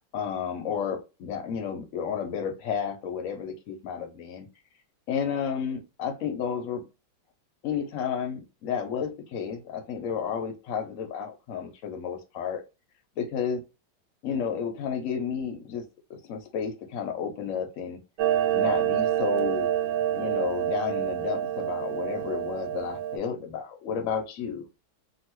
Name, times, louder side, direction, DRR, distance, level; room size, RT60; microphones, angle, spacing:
voice 1, 0.1-4.5 5.1-6.8 7.6-12.6 13.2-13.6 14.2-15.8 16.1-18.0 18.5-19.7 20.1-24.7, left 7 dB, 60° left, 0.8 m, -32 dB
Clock, 18.2-23.2, right 11 dB, 85° right, 1.3 m, -27 dB
2.9 x 2.6 x 2.9 m
omnidirectional pair, 2.0 m